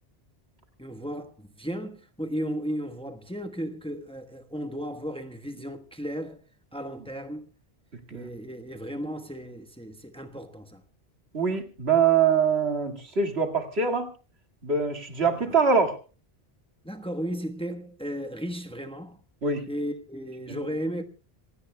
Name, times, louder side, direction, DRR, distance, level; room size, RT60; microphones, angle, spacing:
voice 1, 0.8-6.4 6.7-7.5 8.1-10.8 16.8-19.2 19.7-21.0, equal, 5° left, 1.2 m, -35 dB
voice 2, 11.3-14.1 14.6-16.0 19.4-19.6 20.5-20.6, right 5 dB, 80° right, 2.3 m, -24 dB
26.0 x 17.5 x 2.2 m
omnidirectional pair, 1.1 m